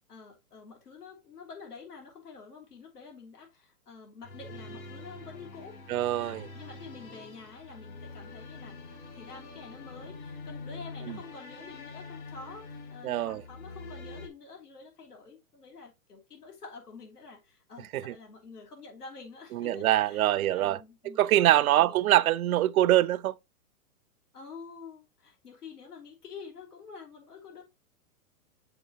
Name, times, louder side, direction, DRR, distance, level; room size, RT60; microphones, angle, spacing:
voice 1, 0.1-5.8 6.2-8.8 9.1-22.2 24.3-27.6, left 5 dB, 90° left, 3.3 m, -48 dB
sound 1, 4.2-14.3, left 3 dB, 65° left, 3.5 m, -45 dB
voice 2, 5.9-6.5 11.1-11.2 13.0-13.4 17.9-18.1 19.5-20.8 21.2-23.3, right 14 dB, 70° right, 0.6 m, -24 dB
6.9 x 4.9 x 2.9 m
hypercardioid pair, 145°, 45 cm